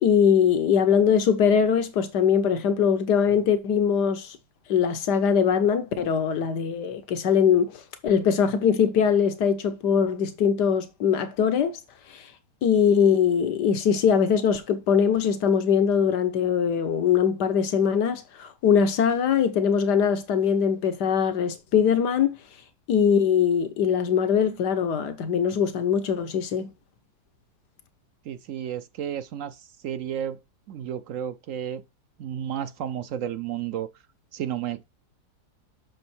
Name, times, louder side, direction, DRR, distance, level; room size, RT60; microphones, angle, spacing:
voice 1, 0.0-4.4 4.7-11.8 12.1-12.2 12.6-22.4 22.9-26.7, left 7 dB, 85° left, 1.7 m, -22 dB
voice 2, 28.3-30.4 30.7-31.8 32.2-33.9 34.3-34.8, right 10 dB, 65° right, 0.8 m, -32 dB
7.8 x 6.2 x 4.4 m
omnidirectional pair, 1.8 m